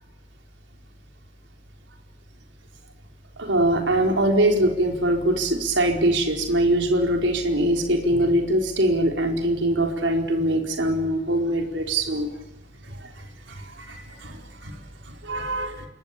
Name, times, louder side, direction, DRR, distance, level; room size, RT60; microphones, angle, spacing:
voice 1, 3.4-12.3 12.9-13.1 13.5-14.8 15.2-15.9, right 1 dB, 75° right, 2 dB, 4.6 m, -23 dB
27.0 x 23.0 x 8.6 m, 0.91 s
head